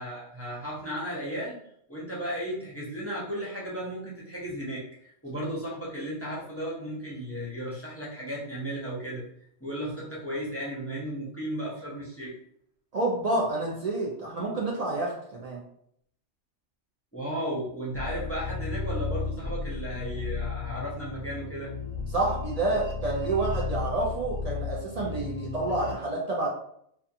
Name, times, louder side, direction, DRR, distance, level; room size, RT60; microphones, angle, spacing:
voice 1, 0.0-1.6 1.9-9.3 9.6-12.4 17.1-21.7, equal, 20° left, -7 dB, 0.4 m, -35 dB
voice 2, 12.9-15.6 22.1-26.5, right 2 dB, 65° right, -3 dB, 0.4 m, -29 dB
sound 1, 17.9-25.9, left 4 dB, 60° left, 0.6 m, -34 dB
2.4 x 2.3 x 2.6 m, 0.69 s
omnidirectional pair, 1.2 m